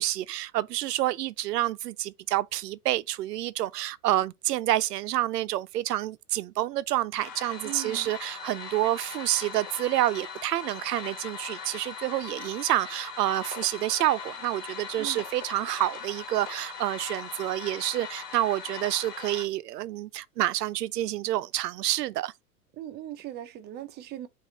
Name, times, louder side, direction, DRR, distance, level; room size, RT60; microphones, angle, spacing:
voice 1, 0.0-22.3, right 14 dB, 80° right, 0.6 m, -28 dB
sound 1, 7.2-19.5, left 6 dB, 60° left, 1.7 m, -40 dB
voice 2, 7.6-8.1 15.0-15.2 22.7-24.3, right 13 dB, 20° right, 0.5 m, -39 dB
4.9 x 2.6 x 3.9 m
hypercardioid pair, 110°, 47 cm